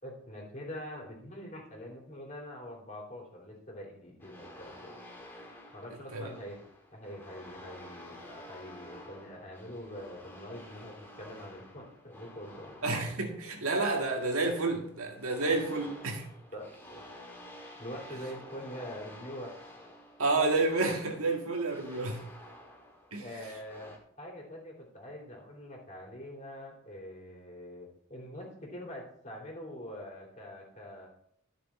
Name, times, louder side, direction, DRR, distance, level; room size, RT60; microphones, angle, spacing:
voice 1, 0.0-5.0 5.7-6.6 6.9-12.8 16.5-17.0 17.8-19.5 23.1-31.1, equal, 35° left, 3.4 m, -44 dB
sound 1, 4.2-24.0, left 1 dB, 10° left, 1.7 m, -51 dB
voice 2, 12.8-16.3 20.2-22.2 23.1-23.2, right 3 dB, 85° right, 1.9 m, -30 dB
13.0 x 6.6 x 4.3 m
head